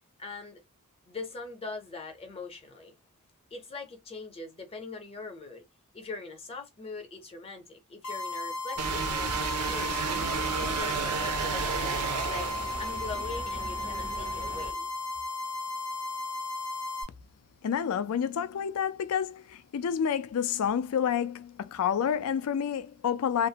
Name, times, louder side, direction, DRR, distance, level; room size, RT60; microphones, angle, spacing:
voice 1, 0.2-0.6 1.1-3.0 3.5-5.6 5.9-14.9, left 3 dB, 25° left, 0.6 m, -42 dB
sound 1, 8.0-17.0, left 3 dB, 85° left, 0.7 m, -35 dB
sound 2, 8.8-14.7, right 2 dB, 30° right, 0.4 m, -39 dB
sound 3, 8.8-13.3, right 6 dB, 90° right, 0.5 m, -32 dB
voice 2, 17.6-23.5, left 8 dB, 70° left, 0.3 m, -29 dB
2.4 x 2.0 x 2.7 m
head